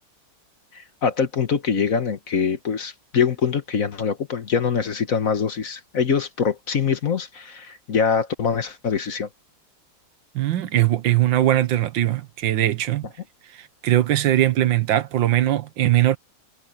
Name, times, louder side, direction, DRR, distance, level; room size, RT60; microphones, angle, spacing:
voice 1, 0.7-9.3, left 6 dB, 50° left, 1.5 m, -24 dB
voice 2, 10.3-13.1 13.5-16.2, right 13 dB, 80° right, 1.6 m, -20 dB
omnidirectional pair, 2.1 m